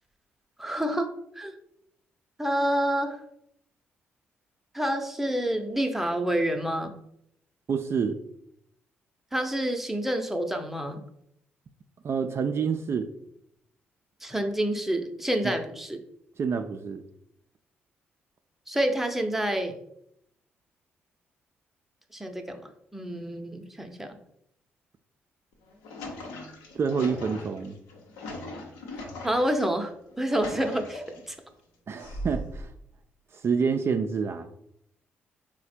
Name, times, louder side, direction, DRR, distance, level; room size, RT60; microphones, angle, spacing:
voice 1, 0.6-1.1 1.4-1.5 2.4-3.2 4.7-6.9 9.3-11.0 14.2-16.0 18.7-19.8 22.1-22.6 22.9-24.2 29.2-31.4, right 1 dB, 5° right, 5 dB, 0.7 m, -28 dB
voice 2, 7.7-8.2 12.0-13.1 16.4-17.0 26.7-27.8 31.9-32.7 33.3-34.5, right 6 dB, 45° right, 7 dB, 0.3 m, -27 dB
sound 1, 25.5-29.6 30.1-31.3 32.0-32.7, left 1 dB, 80° left, 0.8 m, -39 dB
4.0 x 2.2 x 4.2 m, 0.75 s
hypercardioid pair, 50°, 6 cm